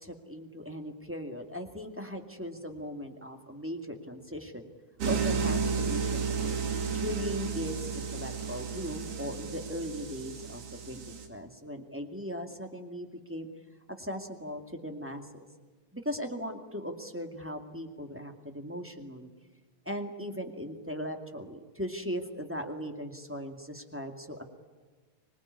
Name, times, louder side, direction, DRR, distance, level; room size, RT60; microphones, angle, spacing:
voice 1, 0.0-4.7 5.0-10.6 10.9-13.5 14.0-15.4 15.9-19.3 19.8-24.5, equal, 5° right, 3 dB, 1.6 m, -38 dB
sound 1, 5.0-11.3, right 5 dB, 85° right, 4.1 m, -32 dB
25.5 x 20.5 x 9.6 m, 1.4 s
omnidirectional pair, 3.4 m